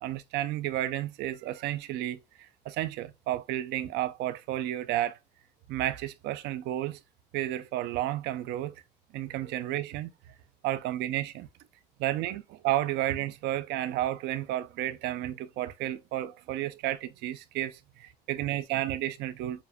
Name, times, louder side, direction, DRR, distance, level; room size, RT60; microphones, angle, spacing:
voice 1, 0.0-5.2 5.7-7.0 7.3-8.8 9.1-10.1 10.6-11.5 12.0-19.6, right 13 dB, 85° right, 0.5 m, -32 dB
7.0 x 2.5 x 2.2 m
cardioid pair, 110°, 17 cm